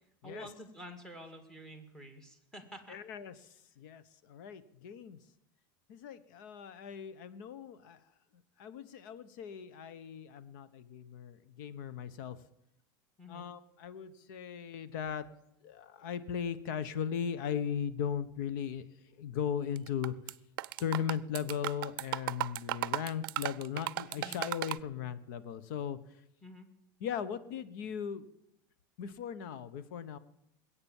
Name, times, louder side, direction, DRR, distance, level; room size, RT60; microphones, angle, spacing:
voice 1, 0.2-3.0 13.2-13.5 24.2-24.4 26.4-26.7, equal, 5° left, 6 dB, 2.1 m, -49 dB
voice 2, 2.9-5.2 5.9-8.0 8.6-12.4 13.3-15.3 15.6-18.8 19.1-20.2 20.8-26.0 27.0-28.3 29.0-30.2, left 8 dB, 65° left, 14 dB, 1.1 m, -38 dB
sound 1, 19.8-20.3 20.6-24.8, right 17 dB, 80° right, 0.5 m, -35 dB
21.0 x 8.7 x 7.3 m, 0.82 s
supercardioid pair, 150°, 11 cm